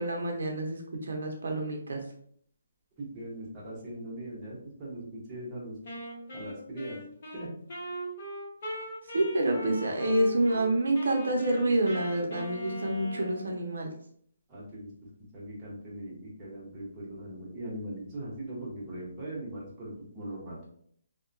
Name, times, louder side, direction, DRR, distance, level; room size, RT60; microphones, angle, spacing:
voice 1, 0.0-2.0 9.1-13.9, right 1 dB, 75° right, 1 dB, 0.6 m, -28 dB
voice 2, 3.0-5.8 6.3-7.0 7.3-7.5 14.5-20.6, right 1 dB, 15° right, -6 dB, 0.9 m, -40 dB
Wind instrument woodwind instrument, 5.8-10.6 10.9-13.6, right 1 dB, 40° left, 0.9 m, -40 dB
2.8 x 2.1 x 2.5 m, 0.62 s
hypercardioid pair, 170°, 0 cm